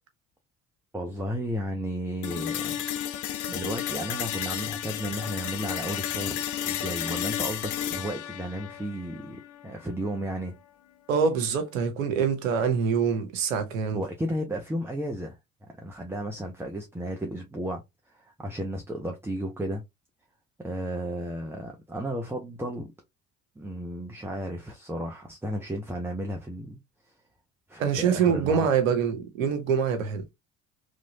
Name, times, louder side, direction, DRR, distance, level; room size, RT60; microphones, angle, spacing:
voice 1, 0.9-2.8 3.5-10.6 13.9-15.4 15.8-17.8 18.1-19.8 20.6-22.9 23.6-26.8 27.7-28.7, equal, 5° right, 0.8 m, -33 dB
sound 1, 2.2-10.2, left 11 dB, 50° left, 0.6 m, -33 dB
voice 2, 11.1-14.0 27.8-30.3, right 6 dB, 80° right, 0.8 m, -25 dB
3.1 x 2.7 x 2.6 m
hypercardioid pair, 50°, 39 cm